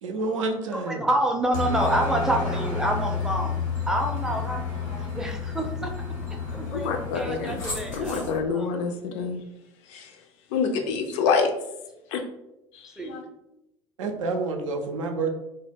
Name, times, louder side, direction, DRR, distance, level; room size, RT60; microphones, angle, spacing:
voice 1, 0.0-1.1 14.0-15.3, right 3 dB, 75° right, 4 dB, 0.4 m, -28 dB
voice 2, 0.9-3.6 3.9-5.9 6.5-8.7 13.0-13.2, right 1 dB, 5° right, 1 dB, 0.4 m, -28 dB
Aircraft, 1.5-8.4, left 5 dB, 85° left, 0.9 m, -30 dB
voice 3, 6.7-9.4 9.9-10.2 10.5-11.5 12.1-12.2 12.7-13.2, left 5 dB, 60° left, 5 dB, 0.4 m, -27 dB
2.1 x 2.0 x 3.3 m, 0.91 s
figure-of-eight pair, 65°, 16 cm